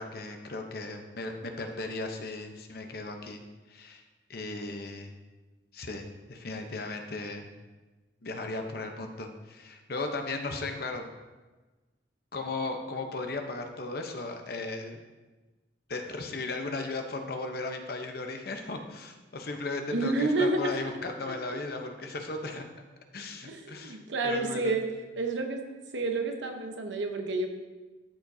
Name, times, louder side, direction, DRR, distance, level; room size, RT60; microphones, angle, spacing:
voice 1, 0.0-3.4 3.7-4.0 4.3-5.1 5.7-7.5 8.2-11.1 12.3-15.0 15.9-22.6 23.1-24.0 24.2-24.7, left 3 dB, 55° left, 4 dB, 0.8 m, -36 dB
voice 2, 19.9-20.8 23.4-24.9 25.2-25.6 25.9-27.5, right 2 dB, 85° right, 4 dB, 0.9 m, -29 dB
12.5 x 5.0 x 2.7 m, 1.2 s
head